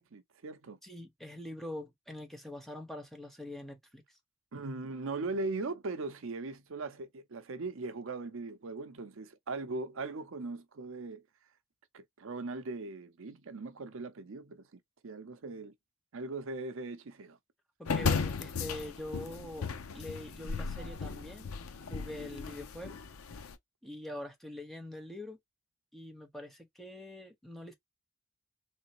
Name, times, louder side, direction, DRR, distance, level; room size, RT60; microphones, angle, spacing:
voice 1, 0.0-0.8 4.5-11.2 11.9-15.7 16.1-17.4, right 3 dB, 65° right, 0.6 m, -39 dB
voice 2, 0.8-4.0 17.8-21.5 21.9-23.0 23.8-25.4 25.9-27.7, left 1 dB, ahead, 1.0 m, -44 dB
sound 1, 17.9-23.6, left 5 dB, 85° left, 0.6 m, -36 dB
3.8 x 3.4 x 2.9 m
head